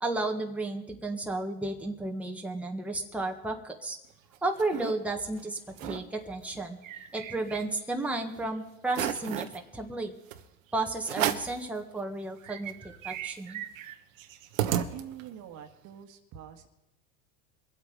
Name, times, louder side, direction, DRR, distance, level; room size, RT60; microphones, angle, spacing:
voice 1, 0.0-4.0 4.4-6.8 7.1-10.1 10.7-13.6, right 2 dB, 5° right, 2 dB, 1.6 m, -33 dB
sound 1, 4.1-4.9 5.4-5.5 5.7-6.0 6.4-8.0 8.4-8.5 8.9-9.6 10.3-10.4 11.0-11.6 12.1-12.2 12.4-15.4, right 11 dB, 90° right, 1.2 m, -34 dB
voice 2, 14.9-16.7, right 9 dB, 50° right, 7 dB, 1.7 m, -45 dB
23.5 x 8.2 x 5.1 m, 0.87 s
supercardioid pair, 110°, 38 cm